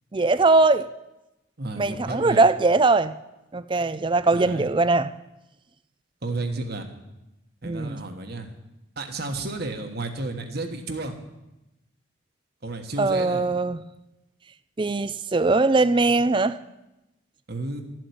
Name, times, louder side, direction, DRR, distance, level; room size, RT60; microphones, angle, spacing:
voice 1, 0.1-0.9 1.8-3.1 3.5-5.1 7.6-8.0 13.0-13.8 14.8-16.6, right 3 dB, 25° right, 0.4 m, -21 dB
voice 2, 1.6-2.4 4.3-4.7 6.2-6.9 7.6-8.5 8.9-11.2 12.6-13.5 17.5-17.8, right 2 dB, 50° right, 1.5 m, -32 dB
13.5 x 7.6 x 9.4 m
head